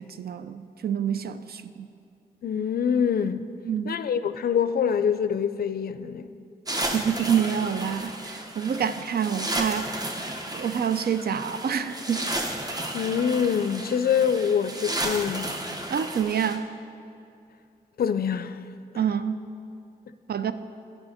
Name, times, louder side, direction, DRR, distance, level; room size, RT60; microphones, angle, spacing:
voice 1, 0.0-1.9 3.6-4.0 6.9-10.1 10.5-12.3 15.9-16.7 19.0-19.4 20.3-20.5, right 8 dB, 70° right, 0.4 m, -27 dB
voice 2, 2.4-3.5 3.9-6.4 12.9-15.6 18.0-18.6, left 7 dB, 70° left, 0.4 m, -25 dB
sound 1, 6.7-16.6, right 1 dB, 25° right, 0.8 m, -33 dB
9.7 x 5.4 x 5.6 m
cardioid pair, 65°, 17 cm